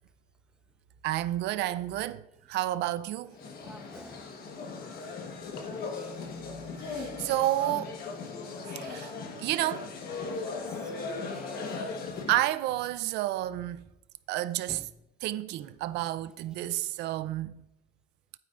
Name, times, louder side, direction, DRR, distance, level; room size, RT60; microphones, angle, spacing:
voice 1, 1.0-3.4 6.8-8.0 8.6-9.1 9.4-9.9 12.3-13.8 14.3-14.8 15.2-17.6, right 14 dB, 85° right, 0.6 m, -30 dB
sound 1, 3.3-12.5, left 4 dB, 65° left, 1.4 m, -38 dB
voice 2, 3.6-4.4 4.8-5.2 5.8-6.3 8.8-8.9 10.5-11.7 14.7-14.9, right 1 dB, 5° right, 0.5 m, -51 dB
12.0 x 9.0 x 2.6 m
cardioid pair, 110°, 17 cm